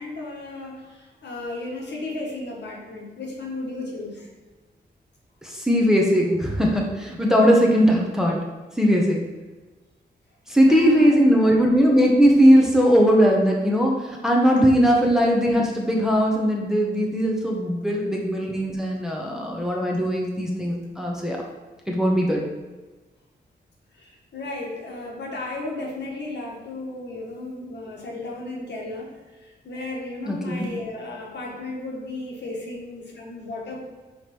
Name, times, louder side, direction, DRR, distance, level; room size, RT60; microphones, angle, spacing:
voice 1, 0.0-4.3 10.6-11.1 23.9-29.1 29.4-33.8, left 2 dB, 75° left, -2 dB, 1.5 m, -34 dB
voice 2, 5.4-8.4 8.8-9.3 10.5-21.4 21.9-22.4 30.3-30.6, equal, 5° right, -2 dB, 0.8 m, -19 dB
5.1 x 4.8 x 4.4 m, 1.2 s
wide cardioid pair, 170°, 18 cm